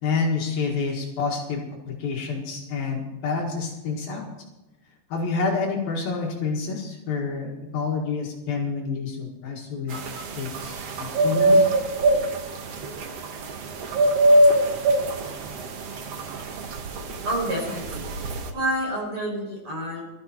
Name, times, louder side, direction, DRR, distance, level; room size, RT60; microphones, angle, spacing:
voice 1, 0.0-4.3 5.1-10.0 10.4-11.7, left 4 dB, 65° left, -1 dB, 3.5 m, -28 dB
sound 1, 9.9-18.5, right 1 dB, 70° right, 1.4 m, -23 dB
voice 2, 17.2-18.0 18.5-20.1, right 1 dB, 35° right, -1 dB, 5.3 m, -28 dB
18.0 x 13.0 x 4.4 m, 1.0 s
omnidirectional pair, 4.8 m